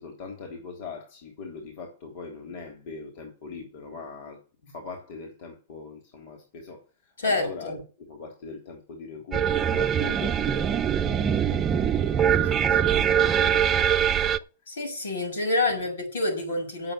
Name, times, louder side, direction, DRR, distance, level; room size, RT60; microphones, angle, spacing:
voice 1, 0.0-14.4 15.7-15.8, left 4 dB, 55° left, 3.6 m, -41 dB
voice 2, 7.2-7.8 14.7-16.9, left 2 dB, 80° left, 6.4 m, -27 dB
sound 1, 9.3-14.4, right 9 dB, 25° right, 0.8 m, -23 dB
9.1 x 8.0 x 8.4 m
hypercardioid pair, 110°, 0 cm